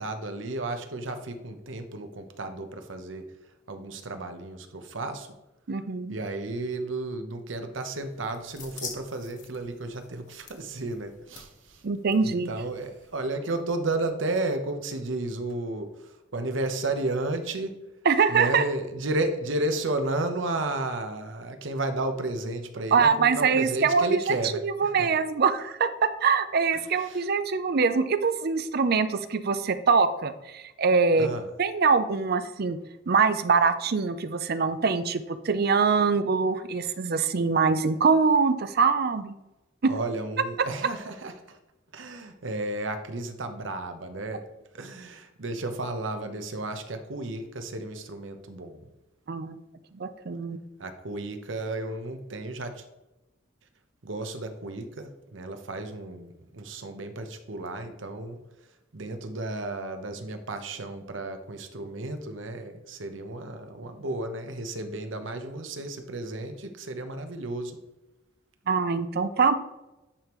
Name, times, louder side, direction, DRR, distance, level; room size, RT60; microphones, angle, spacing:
voice 1, 0.0-3.3 3.7-5.3 6.1-11.8 12.2-17.8 18.3-25.1 26.7-27.3 31.2-31.4 39.9-41.6 41.9-44.4 44.7-48.8 50.8-52.8 54.0-58.4 58.9-67.8, right 2 dB, 80° right, 7 dB, 0.9 m, -33 dB
voice 2, 5.7-6.2 11.8-12.5 18.0-18.6 22.9-24.2 24.6-31.3 31.6-32.8 33.1-39.3 39.8-39.9 49.3-49.6 49.9-50.6 68.7-69.5, right 5 dB, 55° right, 12 dB, 0.5 m, -23 dB
sound 1, 7.9-13.1, left 5 dB, 45° left, 1.4 m, -46 dB
9.9 x 5.2 x 3.1 m, 0.99 s
head